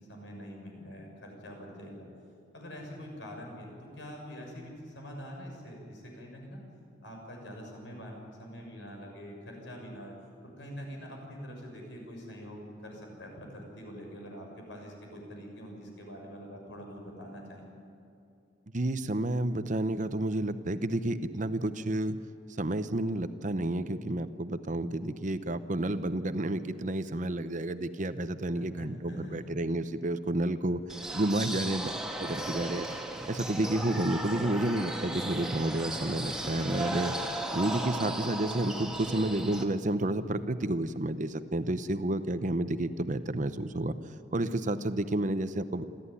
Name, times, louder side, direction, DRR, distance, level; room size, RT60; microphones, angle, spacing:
voice 1, 0.1-2.1 2.5-6.6 7.0-10.1 10.4-17.7 28.5-29.5, equal, 75° left, 1 dB, 6.6 m, -44 dB
voice 2, 18.7-22.2 22.6-30.8 31.1-32.9 33.3-37.2 37.5-43.9 44.3-45.8, right 1 dB, 45° right, 11 dB, 0.9 m, -30 dB
sound 1, 30.9-39.6, right 1 dB, 5° right, 1.9 m, -36 dB
27.5 x 13.5 x 9.9 m, 2.6 s
head